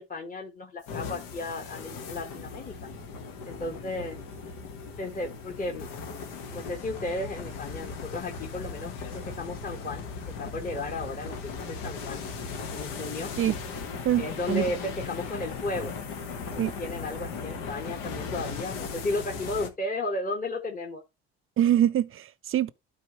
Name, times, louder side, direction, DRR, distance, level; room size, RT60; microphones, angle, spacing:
voice 1, 0.0-2.9 3.4-4.2 5.0-5.9 6.5-10.0 10.4-12.2 12.7-13.3 14.2-15.9 16.8-21.0, left 2 dB, 25° left, 1.5 m, -34 dB
sound 1, 0.8-19.7, left 5 dB, 75° left, 1.4 m, -38 dB
voice 2, 14.0-14.6 16.6-16.7 21.6-22.7, right 11 dB, 40° right, 0.7 m, -24 dB
12.5 x 4.1 x 3.0 m
hypercardioid pair, 60°, 32 cm